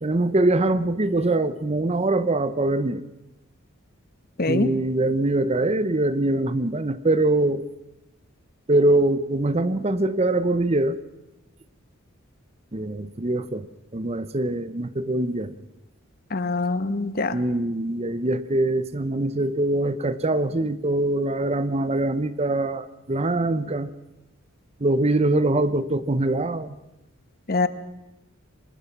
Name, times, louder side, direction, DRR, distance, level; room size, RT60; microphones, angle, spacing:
voice 1, 0.0-3.0 4.5-7.6 8.7-11.0 12.7-13.7 13.9-15.5 17.3-23.9 24.8-26.8, right 2 dB, 30° right, 14 dB, 0.8 m, -23 dB
voice 2, 4.4-4.7 16.3-17.4 27.5-27.7, left 3 dB, 45° left, 12 dB, 1.1 m, -24 dB
25.0 x 20.0 x 5.9 m, 0.95 s
head